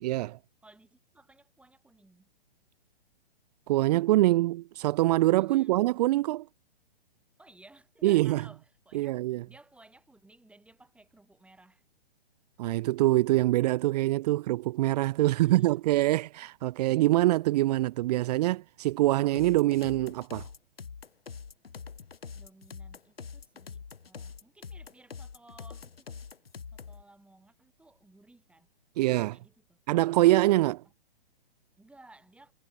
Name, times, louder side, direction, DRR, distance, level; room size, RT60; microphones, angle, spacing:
voice 1, 0.0-0.4 3.7-6.4 8.0-8.4 8.9-9.4 12.6-20.5 29.0-29.4 29.9-30.8, right 17 dB, 45° right, 1.1 m, -24 dB
voice 2, 0.6-2.3 5.5-5.8 7.4-9.2 9.5-11.8 15.2-15.9 22.3-26.1 26.7-28.7 29.0-29.8 31.8-32.5, right 2 dB, 5° right, 7.9 m, -58 dB
sound 1, 19.3-27.0, left 6 dB, 90° left, 2.2 m, -44 dB
hypercardioid pair, 130°, 29 cm